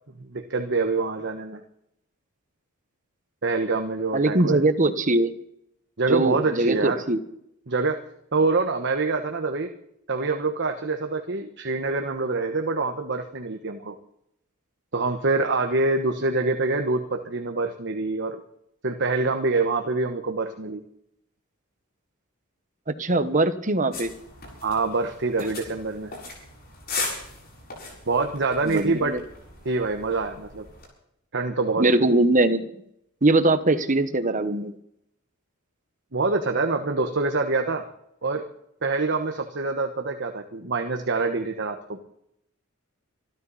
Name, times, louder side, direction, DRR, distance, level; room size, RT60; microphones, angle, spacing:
voice 1, 0.2-1.6 3.4-4.6 6.0-7.0 7.7-8.0 8.3-9.7 10.1-14.0 14.9-18.4 18.8-20.8 24.6-26.1 28.1-29.2 29.6-30.7 31.3-31.9 36.1-37.8 38.2-38.4 38.8-42.0, right 3 dB, 55° right, 5 dB, 1.2 m, -25 dB
voice 2, 4.1-5.3 6.1-7.2 22.9-24.1 28.6-29.2 31.8-32.6 33.2-34.8, right 2 dB, 40° right, 11 dB, 1.2 m, -21 dB
sound 1, 23.9-30.9, left 3 dB, 45° left, 7.4 m, -38 dB
25.5 x 13.0 x 4.2 m, 0.76 s
head